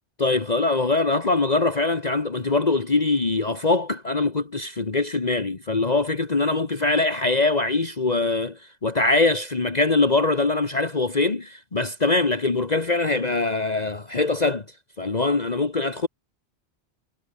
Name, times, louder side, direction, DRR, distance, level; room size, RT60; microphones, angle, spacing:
voice 1, 0.2-14.6 15.0-16.1, left 3 dB, 35° left, 1.7 m, -23 dB
omnidirectional pair, 1.2 m